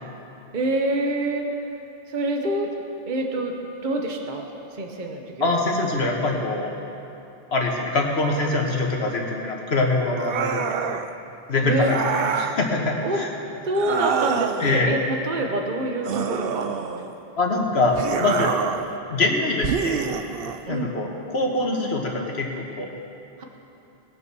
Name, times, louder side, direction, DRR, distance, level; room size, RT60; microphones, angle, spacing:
voice 1, 0.5-1.5 2.1-2.7 3.1-3.5 3.8-4.5 4.8-5.7 11.6-11.9 13.0-13.2 13.6-16.7 20.7-20.9 23.4-23.5, right 1 dB, 50° right, 2 dB, 1.1 m, -26 dB
voice 2, 5.4-6.7 7.5-10.8 11.5-13.3 14.6-15.0 17.4-18.6 19.1-20.0 20.7-22.9, left 2 dB, 90° left, 1 dB, 1.7 m, -24 dB
sound 1, 10.2-11.1 11.8-12.6 13.7-14.8 16.0-17.2 17.9-18.9 19.6-20.6, right 7 dB, 70° right, 0.8 m, -26 dB
20.0 x 7.0 x 6.1 m, 2.9 s
omnidirectional pair, 1.0 m